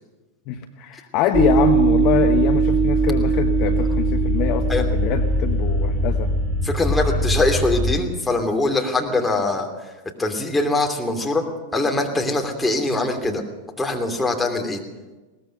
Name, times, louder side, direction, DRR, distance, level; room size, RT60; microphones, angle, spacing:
voice 1, 0.5-6.3, left 10 dB, 40° left, 7 dB, 1.1 m, -24 dB
sound 1, 1.3-8.0, right 3 dB, 15° right, 2.3 m, -20 dB
voice 2, 6.6-9.7 10.2-11.4 11.7-13.4 13.8-14.8, left 2 dB, 5° left, 2 dB, 3.0 m, -22 dB
21.5 x 18.0 x 6.7 m, 1.2 s
figure-of-eight pair, 90°, 0 cm